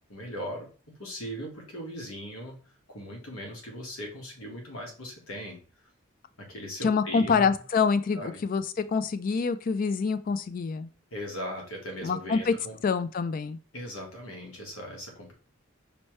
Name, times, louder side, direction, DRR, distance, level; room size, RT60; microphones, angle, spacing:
voice 1, 0.1-0.7 1.0-2.6 2.9-5.6 6.4-7.5 8.1-8.3 11.1-12.8 13.7-15.3, equal, 90° left, 1 dB, 1.5 m, -39 dB
voice 2, 6.8-10.9 12.0-12.5 12.8-13.6, left 5 dB, 40° left, 13 dB, 0.3 m, -26 dB
5.4 x 3.0 x 3.1 m, 0.37 s
head